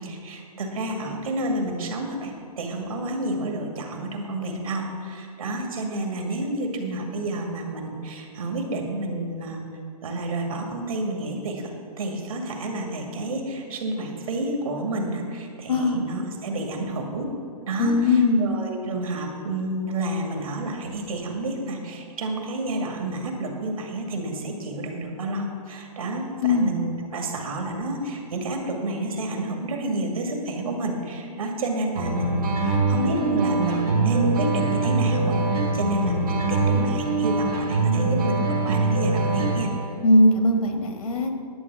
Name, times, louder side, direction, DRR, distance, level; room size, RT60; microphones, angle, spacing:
voice 1, 0.0-9.6 10.0-11.7 12.0-17.3 17.7-39.7, right 2 dB, 65° right, 2 dB, 2.1 m, -29 dB
voice 2, 15.7-16.0 17.8-18.5 26.4-26.7 40.0-41.4, left 2 dB, 65° left, 5 dB, 1.5 m, -19 dB
sound 1, 31.9-39.9, right 3 dB, 90° right, 3.3 m, -23 dB
11.0 x 7.9 x 6.0 m, 2.3 s
hypercardioid pair, 175°, 20 cm